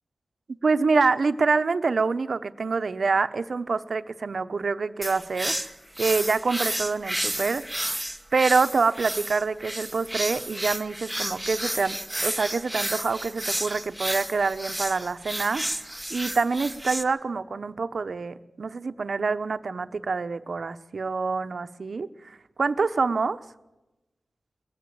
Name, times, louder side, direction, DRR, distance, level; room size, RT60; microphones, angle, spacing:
voice 1, 0.6-5.5 6.0-7.6 8.3-23.4, right 4 dB, 60° right, 11 dB, 0.9 m, -26 dB
sound 1, 5.0-17.0, right 1 dB, 5° right, 1.2 m, -32 dB
22.0 x 15.5 x 9.1 m, 1.0 s
wide cardioid pair, 125°, 0 cm